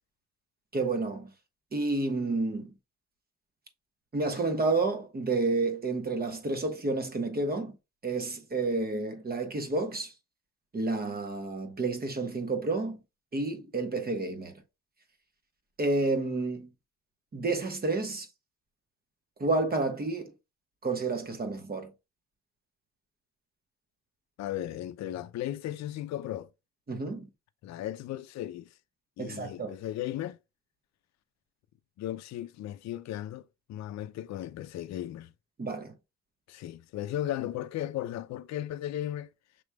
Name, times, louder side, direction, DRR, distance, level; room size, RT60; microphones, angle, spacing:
voice 1, 0.7-1.3 1.7-2.7 4.1-7.7 8.0-10.1 10.7-13.0 13.3-14.5 15.8-16.7 17.3-18.3 19.4-20.3 20.8-21.9 26.9-27.3 29.2-29.7 35.6-35.9, right 3 dB, 30° right, 1.2 m, -30 dB
voice 2, 24.4-26.5 27.6-28.7 29.2-30.4 32.0-35.3 36.5-39.3, left 12 dB, 65° left, 0.5 m, -36 dB
6.1 x 3.2 x 2.2 m
cardioid pair, 90°, 30 cm